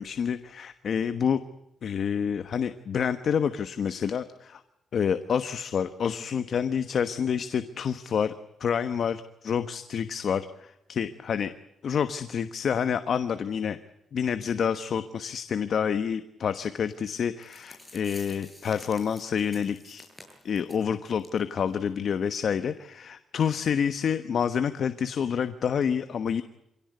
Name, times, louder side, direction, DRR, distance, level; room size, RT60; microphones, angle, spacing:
voice 1, 0.0-1.4 1.8-4.6 4.9-8.3 8.6-11.5 11.8-13.8 14.1-20.0 20.4-26.4, left 7 dB, 55° left, 11 dB, 1.2 m, -28 dB
sound 1, 17.1-17.2 17.4-20.8 21.2-21.4 21.7-21.8 22.3-22.4, left 1 dB, 5° left, 7.0 m, -49 dB
27.0 x 17.5 x 9.5 m, 0.85 s
cardioid pair, 125°, 0 cm